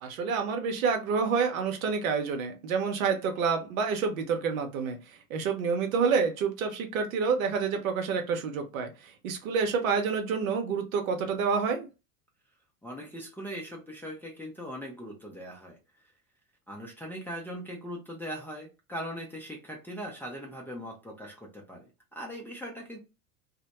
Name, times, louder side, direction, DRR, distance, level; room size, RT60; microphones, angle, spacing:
voice 1, 0.0-11.9, right 5 dB, 60° right, 5 dB, 0.7 m, -28 dB
voice 2, 12.8-15.8 16.7-21.8 22.1-23.0, equal, 5° left, -3 dB, 0.5 m, -40 dB
2.1 x 2.1 x 2.8 m, 0.28 s
figure-of-eight pair, 85°, 45 cm